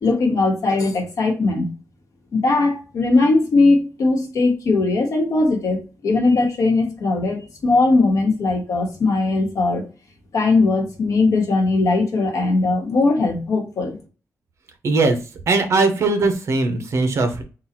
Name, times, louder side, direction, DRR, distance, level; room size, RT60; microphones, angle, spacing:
voice 1, 0.0-1.7 2.3-5.8 6.0-9.8 10.3-14.0, left 3 dB, 65° left, 2 dB, 1.2 m, -19 dB
voice 2, 14.8-15.2 15.5-17.4, right 3 dB, 50° right, 7 dB, 0.8 m, -19 dB
3.9 x 2.4 x 4.3 m, 0.34 s
wide cardioid pair, 175°, 6 cm